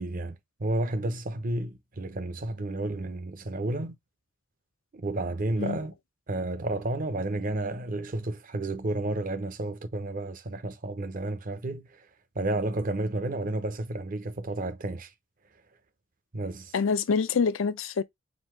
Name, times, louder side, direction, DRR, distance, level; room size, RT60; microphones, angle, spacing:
voice 1, 0.0-4.0 4.9-5.9 6.3-12.0 12.4-15.1 16.3-16.7, right 2 dB, 45° right, 0.7 m, -31 dB
voice 2, 16.7-18.0, left 5 dB, 80° left, 0.5 m, -26 dB
4.0 x 2.6 x 4.4 m
head